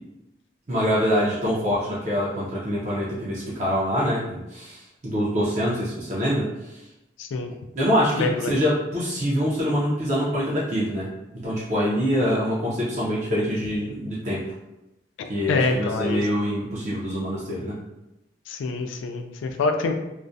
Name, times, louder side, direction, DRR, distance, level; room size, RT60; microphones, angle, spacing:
voice 1, 0.7-6.7 7.8-11.1 11.4-14.4 15.3-17.7, equal, 40° right, -7 dB, 0.5 m, -25 dB
voice 2, 7.2-7.5 8.2-8.5 15.5-16.2 18.5-19.9, left 3 dB, 90° left, 5 dB, 0.3 m, -25 dB
2.4 x 2.1 x 2.5 m, 0.96 s
head